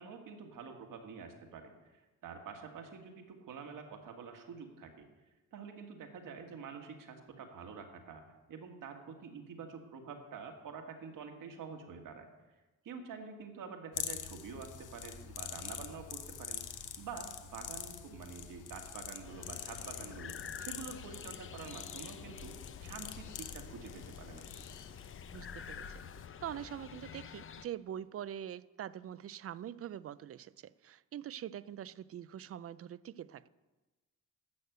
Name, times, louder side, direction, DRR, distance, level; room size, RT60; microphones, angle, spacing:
voice 1, 0.0-5.1 5.5-8.2 8.5-12.3 12.8-22.5 22.8-24.5, right 5 dB, 80° right, 4 dB, 1.9 m, -47 dB
sound 1, 13.9-26.3, left 8 dB, 70° left, 1.1 m, -45 dB
sound 2, 19.2-27.7, left 7 dB, 40° left, 0.7 m, -49 dB
voice 2, 25.3-25.9 26.4-33.5, right 10 dB, 45° right, 18 dB, 0.5 m, -44 dB
12.0 x 6.5 x 7.9 m, 1.2 s
cardioid pair, 100°, 32 cm